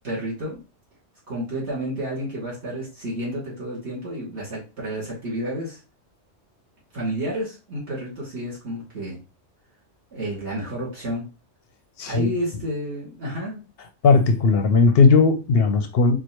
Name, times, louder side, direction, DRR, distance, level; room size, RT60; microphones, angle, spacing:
voice 1, 0.0-0.6 1.3-5.8 6.9-9.2 10.1-11.2 12.0-13.6, equal, 65° right, 2.6 m, -30 dB
voice 2, 12.0-12.3 14.0-16.2, left 4 dB, 60° left, 0.7 m, -17 dB
4.6 x 2.4 x 2.9 m
omnidirectional pair, 1.2 m